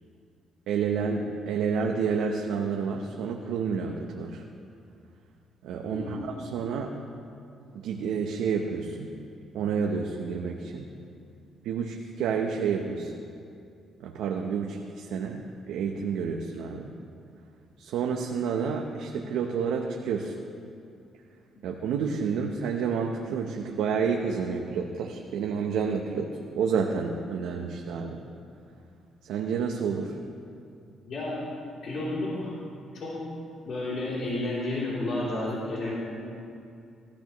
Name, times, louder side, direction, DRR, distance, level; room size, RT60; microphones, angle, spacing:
voice 1, 0.7-4.4 5.6-6.9 7.8-9.1 9.5-10.9 11.6-13.1 14.0-16.9 17.8-20.3 21.6-26.3 26.6-28.2 29.3-30.1, right 6 dB, 90° right, 1 dB, 0.8 m, -29 dB
voice 2, 5.8-6.2 31.1-31.4 31.8-32.5 32.9-33.2 33.6-35.9, left 2 dB, 60° left, -7 dB, 3.2 m, -31 dB
17.5 x 13.5 x 3.1 m, 2.5 s
cardioid pair, 90°, 0 cm